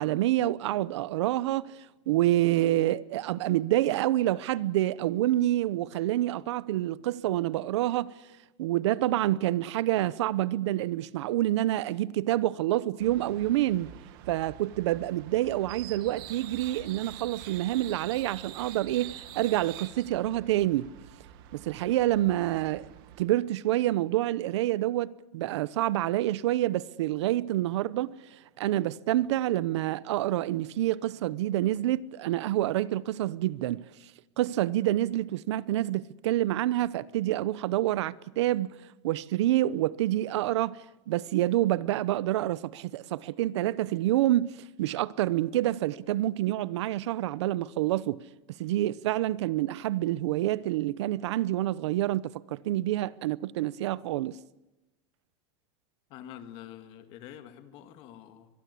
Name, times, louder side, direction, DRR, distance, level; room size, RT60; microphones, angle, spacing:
voice 1, 0.0-1.8 2.1-8.1 8.6-13.9 14.3-20.9 21.5-22.9 23.2-33.8 34.4-38.7 39.0-40.8 41.1-44.5 44.8-48.2 48.6-54.4, right 14 dB, 75° right, 0.8 m, -27 dB
sound 1, 13.0-23.2, right 12 dB, 50° right, 1.8 m, -46 dB
voice 2, 56.1-58.5, left 10 dB, 40° left, 2.1 m, -46 dB
23.5 x 22.0 x 8.4 m
supercardioid pair, 170°, 15 cm